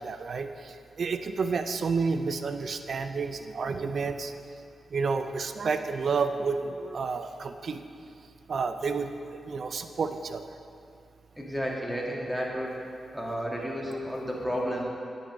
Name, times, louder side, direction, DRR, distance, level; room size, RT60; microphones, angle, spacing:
voice 1, 0.0-4.3 4.9-7.8 8.5-10.4, right 4 dB, 65° right, 9 dB, 0.5 m, -30 dB
voice 2, 11.4-12.7 13.1-14.8, equal, 5° right, -3 dB, 2.2 m, -32 dB
10.0 x 5.5 x 6.4 m, 2.4 s
cardioid pair, 50°, 0 cm